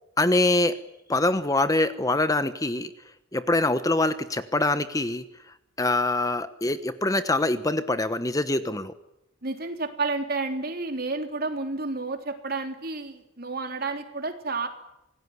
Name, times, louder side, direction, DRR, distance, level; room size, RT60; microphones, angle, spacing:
voice 1, 0.2-0.8 1.1-2.9 3.3-5.2 5.8-8.9, left 2 dB, 15° left, 12 dB, 1.1 m, -24 dB
voice 2, 9.4-14.7, right 3 dB, 50° right, 5 dB, 3.5 m, -30 dB
26.5 x 18.5 x 9.5 m, 0.88 s
head